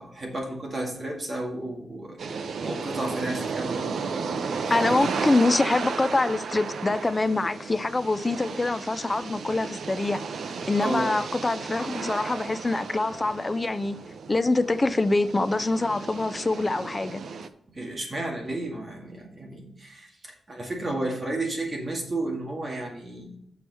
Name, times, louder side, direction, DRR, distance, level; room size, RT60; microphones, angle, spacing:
voice 1, 0.0-3.9 4.6-5.2 10.8-11.1 17.7-23.4, right 2 dB, 25° right, 2.0 m, -32 dB
sound 1, 2.2-17.5, right 5 dB, 65° right, 0.6 m, -34 dB
voice 2, 4.7-14.0 14.3-17.2, left 2 dB, 20° left, 0.3 m, -25 dB
7.0 x 4.7 x 6.7 m
wide cardioid pair, 180°, 0 cm